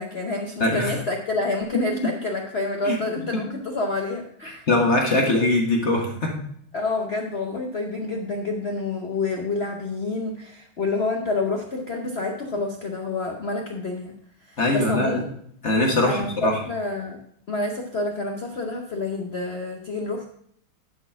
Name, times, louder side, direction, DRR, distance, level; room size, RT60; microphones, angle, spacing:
voice 1, 0.0-4.7 6.7-14.2 14.5-15.3 16.0-17.2 17.5-20.3, left 3 dB, 85° left, 1 dB, 0.5 m, -28 dB
voice 2, 0.6-0.9 2.0-2.1 2.8-3.0 4.7-6.3 14.6-15.2 15.6-16.6, left 2 dB, 35° left, 0 dB, 1.5 m, -21 dB
11.0 x 4.2 x 5.6 m, 0.67 s
omnidirectional pair, 2.3 m